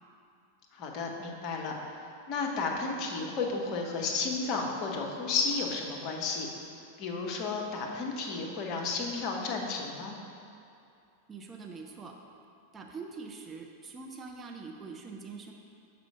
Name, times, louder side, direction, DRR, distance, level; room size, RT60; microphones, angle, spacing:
voice 1, 0.7-1.7 2.3-6.5 7.0-10.2, left 4 dB, 40° left, 0 dB, 0.9 m, -32 dB
voice 2, 11.3-12.2 12.7-15.5, right 4 dB, 20° right, 1 dB, 0.6 m, -44 dB
6.7 x 4.9 x 4.8 m, 2.5 s
figure-of-eight pair, 90°, 0 cm